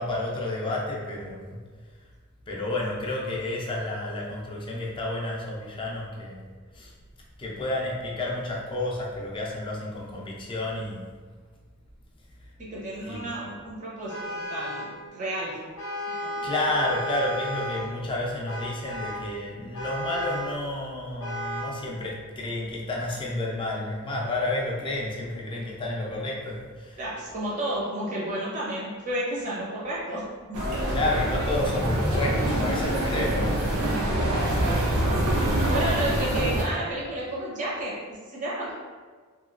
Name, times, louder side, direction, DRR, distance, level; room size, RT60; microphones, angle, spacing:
voice 1, 0.0-1.6 2.5-6.9 7.4-11.2 13.0-13.3 16.4-27.0 30.9-33.8, left 2 dB, 25° left, -3 dB, 0.4 m, -30 dB
voice 2, 12.6-15.6 16.4-16.5 27.0-30.9 33.8-38.7, right 1 dB, 35° right, -7 dB, 0.7 m, -32 dB
Vehicle horn car horn honking, 14.1-15.0 15.8-17.9 18.5-19.3 19.7-20.6 21.2-21.8, equal, 70° left, 0.6 m, -33 dB
sound 1, 30.5-36.6, right 1 dB, 90° right, 0.7 m, -25 dB
2.9 x 2.8 x 2.4 m, 1.5 s
head